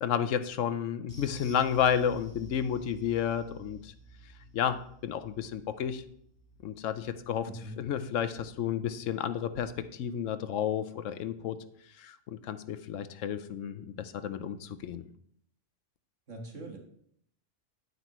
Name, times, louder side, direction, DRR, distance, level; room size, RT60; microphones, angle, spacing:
voice 1, 0.0-3.9 4.5-6.0 6.6-7.5 7.8-11.6 12.0-15.0, left 8 dB, 90° left, 11 dB, 1.0 m, -31 dB
sound 1, 1.1-9.8 10.0-10.3 10.6-10.7, equal, 15° left, 1.4 m, -52 dB
voice 2, 7.4-7.8 16.3-16.8, right 1 dB, 80° right, 1 dB, 2.1 m, -42 dB
9.6 x 9.4 x 3.1 m, 0.68 s
omnidirectional pair, 1.2 m